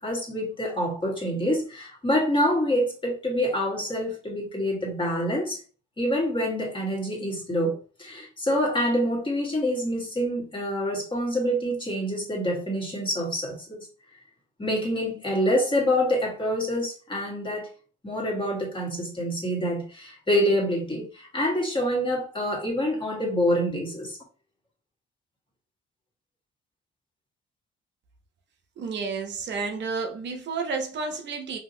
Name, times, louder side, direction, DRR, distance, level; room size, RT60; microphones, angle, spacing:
voice 1, 0.0-5.6 6.0-13.9 14.6-17.7 18.0-24.2, equal, 25° left, 1.5 m, -26 dB
voice 2, 28.8-31.6, right 4 dB, 65° right, 0.7 m, -31 dB
2.9 x 2.8 x 2.7 m
cardioid pair, 90°, 20 cm